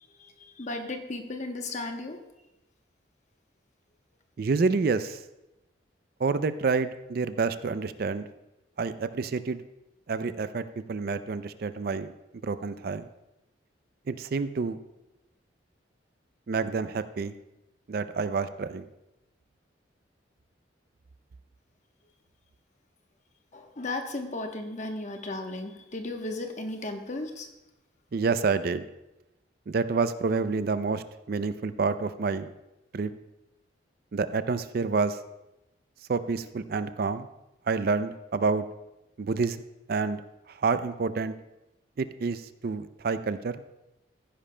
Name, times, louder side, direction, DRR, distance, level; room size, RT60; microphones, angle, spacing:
voice 1, 0.4-2.2 23.5-27.5, left 2 dB, 40° left, 4 dB, 1.0 m, -35 dB
voice 2, 4.4-5.2 6.2-8.2 8.8-9.6 10.1-12.1 12.4-13.1 14.1-14.8 16.5-17.3 17.9-18.8 28.1-28.8 29.7-32.5 32.9-33.1 34.1-35.2 36.1-37.3 37.7-38.6 39.2-39.6 39.9-40.2 40.6-41.3 42.0-43.6, right 4 dB, 50° right, 12 dB, 0.4 m, -28 dB
15.0 x 10.0 x 2.2 m, 0.95 s
head